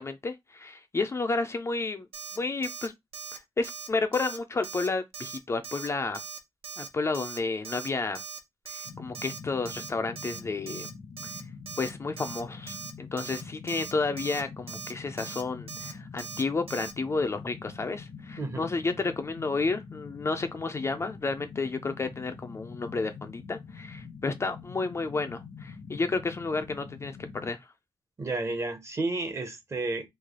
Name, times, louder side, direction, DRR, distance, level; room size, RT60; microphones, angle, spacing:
voice 1, 0.0-2.1 2.4-2.9 3.3-6.2 6.8-8.2 8.7-10.9 11.8-27.6, left 3 dB, 30° left, 0.3 m, -31 dB
Alarm, 2.1-2.4 2.6-2.9 3.1-3.4 3.6-4.4 4.6-4.9 5.1-5.4 5.6-5.9 6.1-6.4 6.6-6.9 7.1-7.4 7.6-7.9 8.1-8.4 8.6-8.9 9.1-9.4 9.6-9.9 10.2-10.4 10.7-10.9 11.2-11.4 11.7-11.9 12.2-12.4 12.7-12.9 13.2-13.4 13.7-13.9 14.2-14.4 14.7-14.9 15.2-15.4 15.7-15.9 16.2-16.4 16.7-16.9, right 6 dB, 85° right, 0.7 m, -40 dB
sound 1, 8.8-27.5, left 5 dB, 80° left, 0.9 m, -45 dB
voice 2, 18.4-18.7 28.2-30.1, right 2 dB, 30° right, 0.7 m, -31 dB
3.2 x 2.3 x 3.5 m
wide cardioid pair, 160°, 9 cm